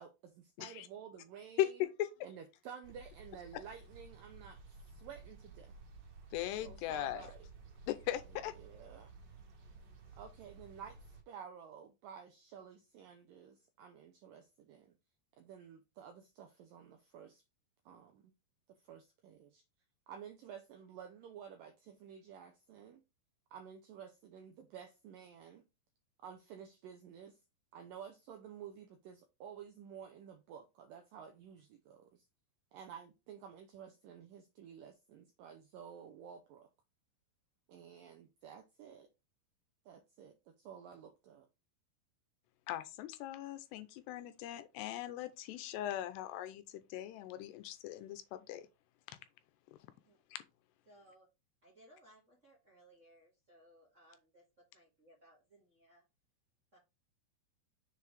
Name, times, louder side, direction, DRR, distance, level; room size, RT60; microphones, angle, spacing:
voice 1, 0.0-1.8 2.2-5.7 6.6-7.5 8.6-9.1 10.1-15.0 15.4-17.4 17.9-18.3 18.9-19.6 20.1-23.0 23.5-25.7 26.2-27.4 27.7-32.3 32.7-36.7 37.7-39.1 39.9-41.5, right 8 dB, 85° right, 2.0 m, -52 dB
sound 1, 2.8-11.2, right 3 dB, 55° right, 2.6 m, -55 dB
voice 2, 6.3-7.3 7.9-8.5 42.7-48.7 49.1-49.2 50.3-50.4, left 13 dB, 85° left, 2.7 m, -39 dB
voice 3, 50.9-51.3 51.6-54.4 54.7-56.0 56.7-56.8, right 1 dB, 35° right, 1.2 m, -63 dB
6.8 x 4.7 x 3.4 m
omnidirectional pair, 4.9 m